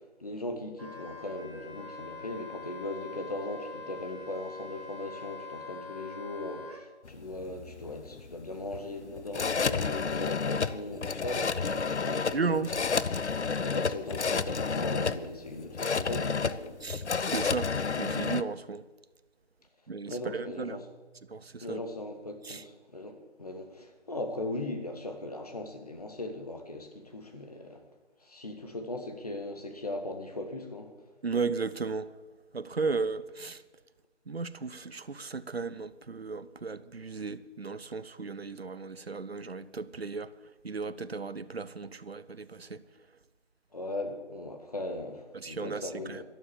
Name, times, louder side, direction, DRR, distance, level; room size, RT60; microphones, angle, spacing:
voice 1, 0.2-12.7 13.6-16.8 20.1-20.8 21.6-27.8 28.2-30.9 43.7-46.2, left 1 dB, 35° left, 1.6 m, -38 dB
Wind instrument woodwind instrument, 0.8-6.8, left 4 dB, 25° right, 1.4 m, -44 dB
sound 1, 7.1-18.4, left 5 dB, 75° left, 0.8 m, -31 dB
voice 2, 12.3-12.7 16.8-18.9 19.9-20.8 21.3-21.8 22.4-22.6 31.2-32.2 32.5-33.6 34.3-40.3 40.6-42.8 45.3-46.2, right 4 dB, 60° right, 0.8 m, -35 dB
Keyboard (musical), 20.5-23.5, right 4 dB, ahead, 1.9 m, -62 dB
12.5 x 11.5 x 7.0 m
figure-of-eight pair, 175°, 35 cm